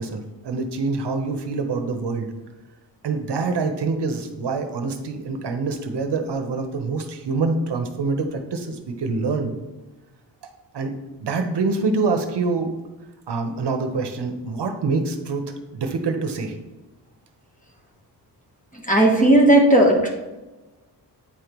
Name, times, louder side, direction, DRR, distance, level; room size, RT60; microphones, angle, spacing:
voice 1, 0.0-2.3 3.0-9.5 10.4-10.5 10.7-10.9 11.2-12.7 13.3-15.4 15.7-16.6, right 4 dB, 70° right, 6 dB, 0.8 m, -25 dB
voice 2, 18.9-20.1, right 1 dB, 20° left, 0 dB, 1.1 m, -15 dB
8.7 x 5.1 x 3.0 m, 1.1 s
wide cardioid pair, 165°, 43 cm